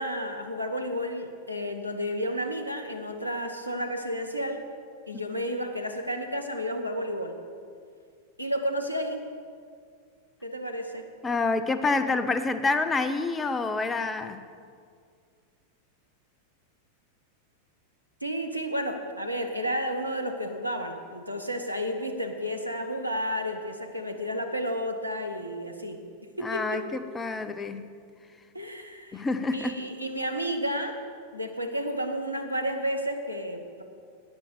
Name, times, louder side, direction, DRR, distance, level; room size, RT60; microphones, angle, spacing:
voice 1, 0.0-4.7 5.1-7.4 8.4-9.3 10.4-11.1 18.2-26.0 26.4-26.9 28.5-29.2 29.5-31.0 31.3-33.8, equal, 90° right, 4 dB, 1.1 m, -31 dB
voice 2, 11.2-14.4 26.4-27.9 29.1-29.8, left 3 dB, 15° left, 10 dB, 0.7 m, -28 dB
11.5 x 9.9 x 6.8 m, 2.2 s
figure-of-eight pair, 90°, 0 cm